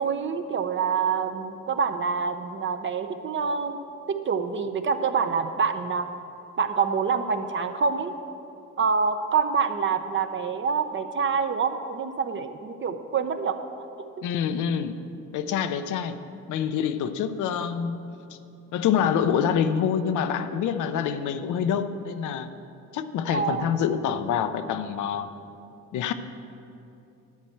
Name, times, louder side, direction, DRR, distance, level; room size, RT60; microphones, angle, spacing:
voice 1, 0.0-3.8 4.1-6.1 6.6-8.1 8.8-13.6 23.3-23.7, right 5 dB, 40° right, 9 dB, 0.7 m, -26 dB
voice 2, 14.2-15.0 15.3-16.2 16.5-18.1 18.7-22.5 22.9-25.3 25.9-26.1, left 8 dB, 80° left, 10 dB, 0.6 m, -26 dB
10.5 x 4.4 x 7.7 m, 2.7 s
cardioid pair, 90°, 30 cm